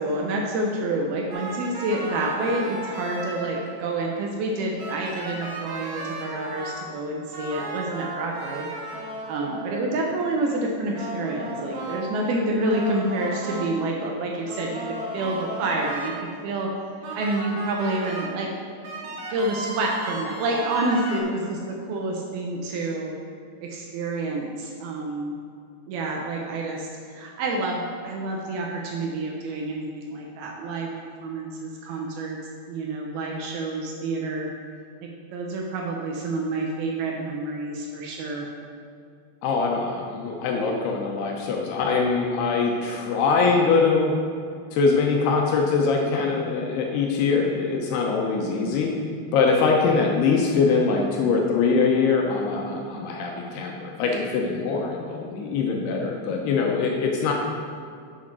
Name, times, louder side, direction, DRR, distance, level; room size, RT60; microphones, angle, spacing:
voice 1, 0.0-8.7 9.3-16.7 17.2-18.5 19.1-23.1 23.6-25.3 25.9-30.9 31.2-32.4 32.7-34.5 35.0-38.5, right 2 dB, 80° right, 0 dB, 2.2 m, -28 dB
sound 1, 1.3-3.8 4.8-6.8 7.3-10.0 10.9-12.1 12.7-13.7 14.5-16.1 17.0-18.3 18.8-21.2, right 2 dB, 60° right, 3.3 m, -35 dB
voice 2, 39.4-44.1 44.7-48.9 49.3-57.3, left 4 dB, 80° left, 0 dB, 2.4 m, -23 dB
7.7 x 6.3 x 6.0 m, 2.3 s
omnidirectional pair, 5.4 m